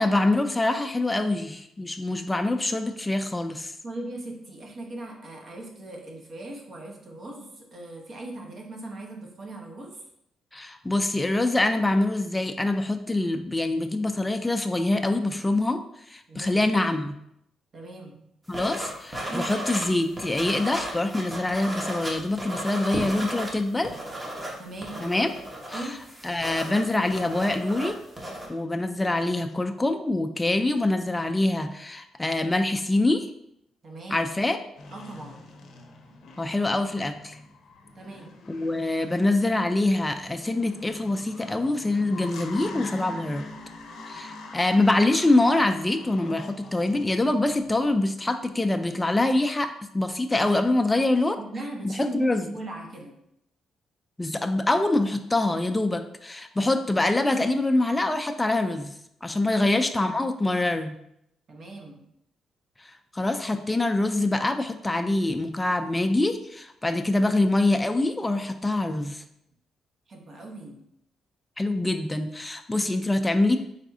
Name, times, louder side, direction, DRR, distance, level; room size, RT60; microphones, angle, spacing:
voice 1, 0.0-3.7 10.5-15.8 16.1-17.2 18.5-23.9 25.0-25.3 25.7-26.0 26.2-28.0 28.5-33.3 34.1-34.6 36.4-37.4 38.5-43.5 44.1-51.4 51.8-52.5 54.2-58.9 59.2-61.0 62.8-69.2 71.6-73.6, left 2 dB, 15° left, 6 dB, 0.3 m, -25 dB
voice 2, 3.8-10.0 16.3-16.7 17.7-18.2 19.3-19.5 24.6-25.1 25.7-26.0 33.8-34.3 34.9-35.4 37.9-38.3 51.4-53.1 59.3-59.7 61.5-62.0 70.1-70.8, right 2 dB, 50° right, 1 dB, 0.9 m, -39 dB
sound 1, 18.5-19.9 20.2-23.5 23.8-28.5, right 1 dB, 20° right, 1.0 m, -34 dB
sound 2, 34.8-47.9, left 2 dB, 65° left, 0.6 m, -43 dB
4.0 x 3.4 x 2.7 m, 0.77 s
cardioid pair, 90°, 0 cm